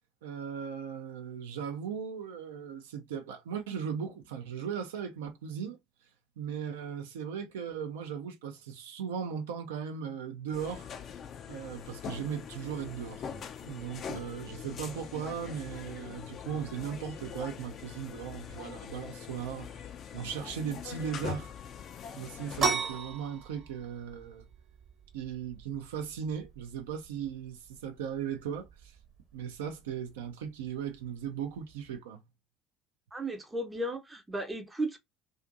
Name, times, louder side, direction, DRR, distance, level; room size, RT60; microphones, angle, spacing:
voice 1, 0.2-5.8 6.4-10.9 11.5-19.8 20.1-21.5 22.2-24.4 25.1-28.9 29.3-32.2, right 8 dB, 75° right, 0.4 m, -38 dB
sound 1, 10.5-22.7, left 8 dB, 45° left, 0.4 m, -43 dB
sound 2, 22.6-32.0, right 5 dB, 45° right, 0.8 m, -39 dB
voice 2, 33.1-35.0, right 1 dB, 15° right, 0.5 m, -35 dB
2.5 x 2.4 x 2.5 m
figure-of-eight pair, 60°, 0 cm